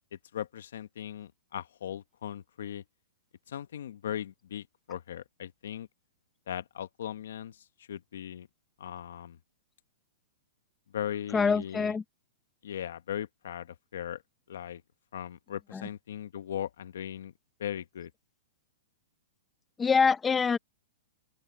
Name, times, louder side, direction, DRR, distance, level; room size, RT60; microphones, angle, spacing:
voice 1, 0.1-2.8 3.5-5.9 6.5-8.5 8.8-9.4 10.9-11.9 12.6-14.2 14.5-14.8 15.1-17.3 17.6-18.1, left 10 dB, 70° left, 1.0 m, -38 dB
voice 2, 11.3-12.0 15.7-15.8 19.8-20.6, left 5 dB, 10° left, 0.6 m, -25 dB
open air
hypercardioid pair, 170°, 0 cm